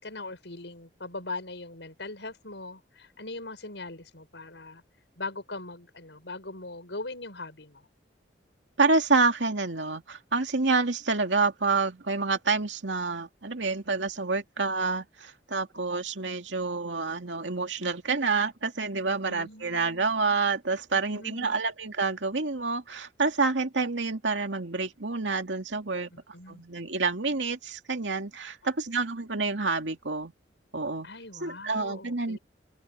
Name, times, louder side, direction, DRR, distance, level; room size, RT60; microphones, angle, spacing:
voice 1, 0.0-4.8 5.2-7.9 19.2-20.1 20.9-21.6 26.1-26.6 31.0-32.4, left 2 dB, 75° left, 6.6 m, -41 dB
voice 2, 8.8-26.1 26.5-30.3 30.7-31.1 31.4-32.4, right 4 dB, 90° right, 2.4 m, -28 dB
open air
head